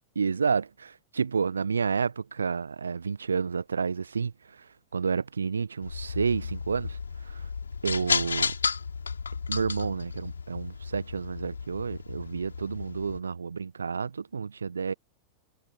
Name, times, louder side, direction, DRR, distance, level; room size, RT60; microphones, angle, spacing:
voice 1, 0.1-7.5 7.8-8.6 9.5-14.9, right 5 dB, 75° right, 1.2 m, -30 dB
sound 1, 5.8-13.2, left 5 dB, 75° left, 5.8 m, -33 dB
figure-of-eight pair, 90°, 0 cm